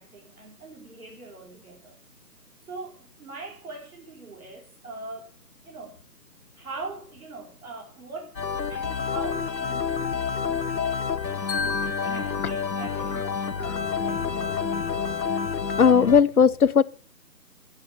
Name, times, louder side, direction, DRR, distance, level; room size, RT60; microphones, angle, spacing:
voice 1, 0.0-2.0 2.6-5.4 5.6-6.0 6.5-11.4 11.8-15.0, right 3 dB, 55° right, 4.7 m, -42 dB
sound 1, 8.4-16.2, left 6 dB, 85° left, 1.3 m, -28 dB
voice 2, 15.8-16.8, left 6 dB, 60° left, 0.6 m, -17 dB
10.5 x 7.6 x 6.7 m
figure-of-eight pair, 170°, 50 cm